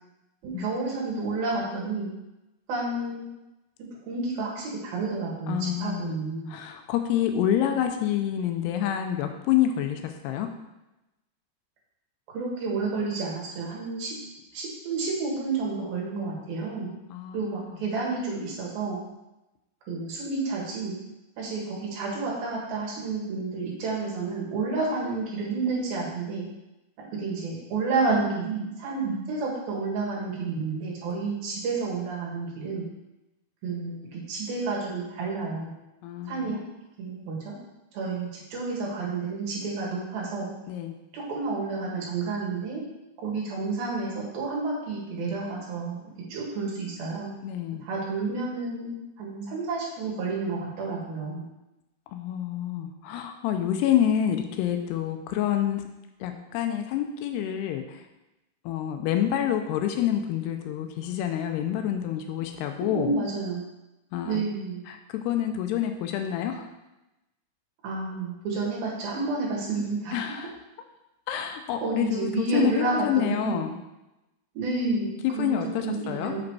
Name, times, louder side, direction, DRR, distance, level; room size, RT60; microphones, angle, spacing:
voice 1, 0.4-2.1 2.7-3.3 3.8-6.5 12.3-14.1 14.5-16.9 17.3-19.0 19.9-21.0 21.4-26.5 27.2-32.8 33.6-35.7 36.3-36.6 37.0-37.6 37.9-40.5 41.1-42.8 43.2-46.0 46.3-47.3 47.8-51.4 62.9-63.6 64.2-64.8 67.8-70.5 71.8-73.6 74.5-76.4, right 3 dB, 70° right, -3 dB, 3.4 m, -30 dB
voice 2, 5.5-6.1 6.5-10.5 17.1-17.8 31.1-31.2 36.0-36.5 40.7-40.9 47.4-47.8 52.1-55.8 56.2-58.0 58.7-63.1 64.1-64.4 64.9-66.7 70.1-70.5 71.3-73.7 75.2-76.3, left 10 dB, 90° left, 5 dB, 2.7 m, -27 dB
7.2 x 5.0 x 4.7 m, 0.96 s
omnidirectional pair, 4.6 m